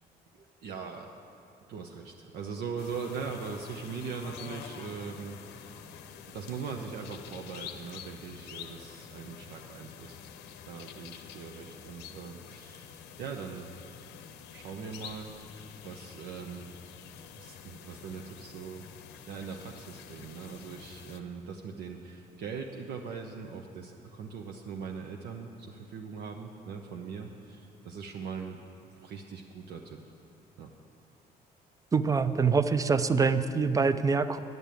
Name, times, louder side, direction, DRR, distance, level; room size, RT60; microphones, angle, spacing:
voice 1, 0.3-1.1 1.7-5.8 6.3-10.2 10.6-13.7 14.5-16.7 17.4-18.9 19.3-28.6 28.9-30.0 30.6-30.7, right 5 dB, 70° right, 2 dB, 0.8 m, -41 dB
sound 1, 2.8-21.2, left 8 dB, 90° left, 0.7 m, -48 dB
voice 2, 31.9-34.4, right 5 dB, 20° right, 12 dB, 0.5 m, -25 dB
11.0 x 6.7 x 9.0 m, 2.6 s
cardioid pair, 110°, 17 cm